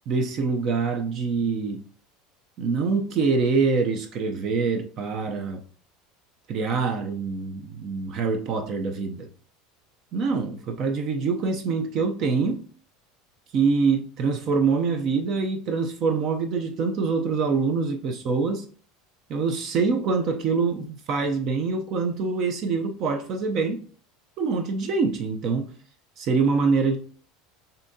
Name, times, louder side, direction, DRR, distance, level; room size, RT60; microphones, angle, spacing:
voice 1, 0.1-1.8 2.6-5.6 6.5-9.3 10.1-12.6 13.5-18.7 19.3-23.8 24.4-25.7 26.2-27.0, right 4 dB, 45° right, 0.5 m, -25 dB
6.9 x 2.7 x 2.7 m
supercardioid pair, 145°, 0 cm